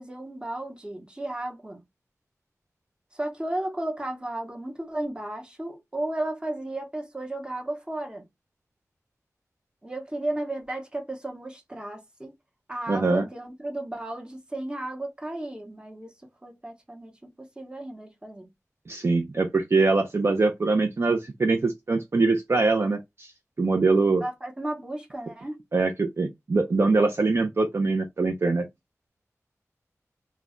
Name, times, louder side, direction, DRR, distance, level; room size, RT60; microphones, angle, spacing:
voice 1, 0.0-1.8 3.1-8.2 9.8-12.3 12.7-16.1 16.4-18.5 24.2-25.6, right 1 dB, 15° right, 0.8 m, -34 dB
voice 2, 12.9-13.3 18.9-23.3 23.6-24.2 25.7-28.6, right 3 dB, 50° right, 0.4 m, -23 dB
2.3 x 2.1 x 3.6 m
wide cardioid pair, 85°, 6 cm